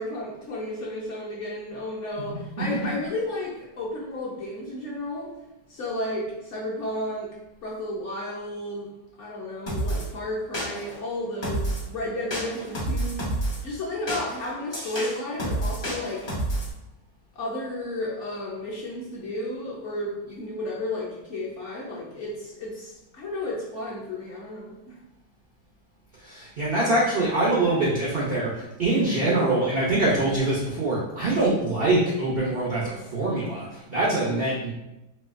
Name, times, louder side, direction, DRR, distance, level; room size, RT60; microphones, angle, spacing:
voice 1, 0.0-5.3 5.7-7.3 7.6-8.9 9.2-13.3 13.6-16.3 17.3-25.0 29.0-29.4 34.2-34.5, left 1 dB, 60° left, -5 dB, 0.8 m, -33 dB
sound 1, 9.7-10.0 10.5-11.0 11.4-11.9 12.3-13.6 14.1-16.7, right 1 dB, 40° left, 0.3 m, -29 dB
voice 2, 26.2-34.7, right 2 dB, 80° right, -5 dB, 0.5 m, -24 dB
4.1 x 2.2 x 2.4 m, 0.96 s
omnidirectional pair, 1.8 m